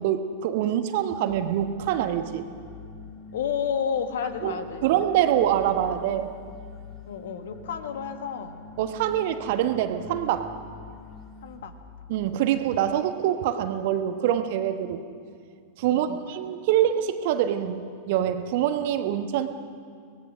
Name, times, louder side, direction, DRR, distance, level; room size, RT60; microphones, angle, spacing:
voice 1, 0.0-2.5 4.4-4.6 4.8-6.3 8.8-10.5 12.1-15.0 15.8-19.5, right 11 dB, 50° right, 9 dB, 1.3 m, -25 dB
sound 1, 1.3-11.6, left 3 dB, 30° left, 6.5 m, -44 dB
voice 2, 3.3-4.8 7.1-8.6 11.4-11.7 15.9-16.2, left 7 dB, 60° left, 9 dB, 1.6 m, -31 dB
24.5 x 19.5 x 6.4 m, 2.3 s
figure-of-eight pair, 90°, 0 cm